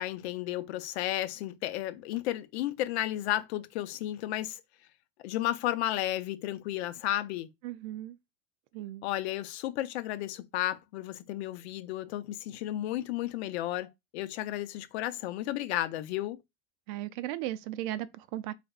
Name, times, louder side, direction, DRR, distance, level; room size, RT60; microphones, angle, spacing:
voice 1, 0.0-4.6 5.2-7.5 9.0-16.4, left 14 dB, 75° left, 0.7 m, -33 dB
voice 2, 7.6-8.2 8.7-9.0 16.9-18.5, right 14 dB, 50° right, 0.4 m, -36 dB
4.1 x 3.4 x 2.4 m
supercardioid pair, 140°, 33 cm